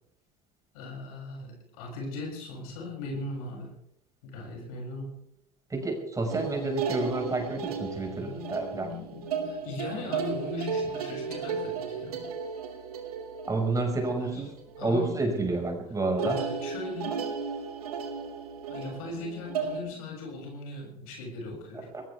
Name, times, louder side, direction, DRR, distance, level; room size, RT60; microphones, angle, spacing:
voice 1, 0.7-3.7 4.2-5.1 8.1-12.2 14.0-14.4 14.8-15.1 16.2-17.3 18.7-21.9, left 2 dB, 70° left, 0 dB, 7.5 m, -39 dB
voice 2, 5.7-8.9 13.5-14.5 14.8-16.4 21.9-22.0, right 2 dB, 15° right, 2 dB, 5.9 m, -29 dB
sound 1, 6.3-15.1 15.4-15.8 16.2-19.8, right 6 dB, 80° right, 2.7 m, -35 dB
21.5 x 19.0 x 3.6 m, 0.75 s
hypercardioid pair, 75°, 19 cm